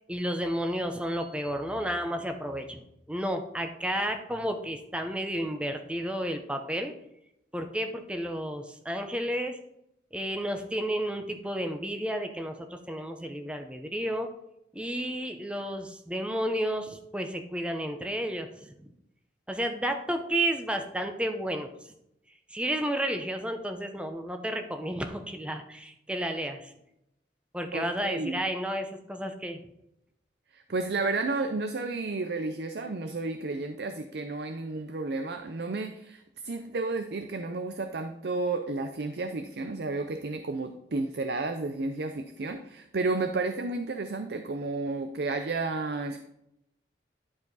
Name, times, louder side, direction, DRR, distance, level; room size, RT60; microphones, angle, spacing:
voice 1, 0.1-2.8 3.1-6.9 7.5-9.6 10.1-14.3 14.7-18.9 19.5-21.7 22.5-26.7 27.5-29.6, equal, 5° right, 5 dB, 0.7 m, -32 dB
voice 2, 27.7-28.4 30.5-46.2, right 3 dB, 60° right, 7 dB, 0.5 m, -32 dB
11.0 x 4.7 x 4.0 m, 0.81 s
head